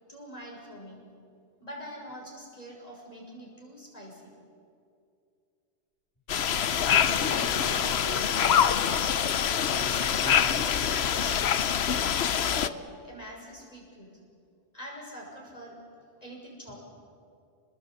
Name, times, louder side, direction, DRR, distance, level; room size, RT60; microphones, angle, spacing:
voice 1, 0.1-1.0 1.6-4.3 12.4-14.2 14.7-15.8 16.2-16.8, equal, 35° left, -2 dB, 6.4 m, -44 dB
sound 1, 6.3-12.7, left 8 dB, 70° left, 1.0 m, -25 dB
Wind instrument woodwind instrument, 6.3-10.3, left 2 dB, 80° right, 7.5 m, -47 dB
voice 2, 6.8-9.1 9.7-11.3, equal, 15° left, -4 dB, 4.1 m, -39 dB
29.0 x 21.0 x 8.4 m, 2.4 s
omnidirectional pair, 1.1 m